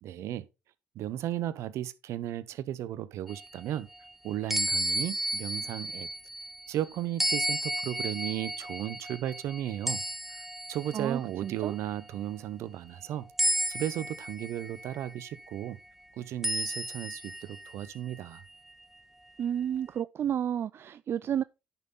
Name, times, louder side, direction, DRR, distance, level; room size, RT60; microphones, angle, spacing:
voice 1, 0.0-0.5 0.9-3.9 4.2-6.1 6.7-10.0 10.3-10.4 10.7-13.3 13.7-15.8 16.1-18.4, right 12 dB, 70° right, 0.8 m, -35 dB
sound 1, 3.3-6.7 7.2-11.1 11.6-12.0 13.4-15.5 16.4-18.4, right 1 dB, 5° right, 0.6 m, -33 dB
voice 2, 10.9-11.7 19.4-21.4, right 9 dB, 50° right, 0.4 m, -31 dB
10.5 x 5.8 x 4.0 m
hypercardioid pair, 55°, 5 cm